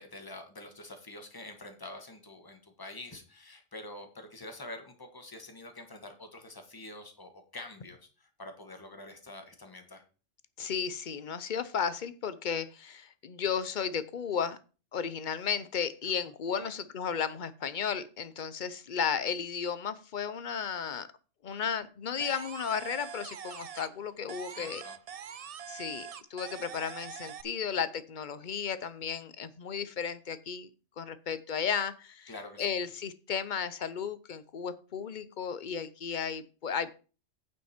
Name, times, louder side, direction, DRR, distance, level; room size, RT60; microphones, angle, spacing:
voice 1, 0.0-10.0 16.0-16.1 16.6-16.8 24.5-25.0 32.3-32.7, left 2 dB, 20° left, 6 dB, 1.5 m, -46 dB
voice 2, 10.6-14.6 14.9-21.1 21.4-24.8 25.7-30.7 31.0-32.3 32.6-37.0, left 7 dB, 45° left, 14 dB, 0.8 m, -34 dB
sound 1, 22.2-24.0 24.3-27.4, right 7 dB, 70° right, 0.3 m, -44 dB
9.2 x 7.7 x 4.4 m, 0.36 s
omnidirectional pair, 1.3 m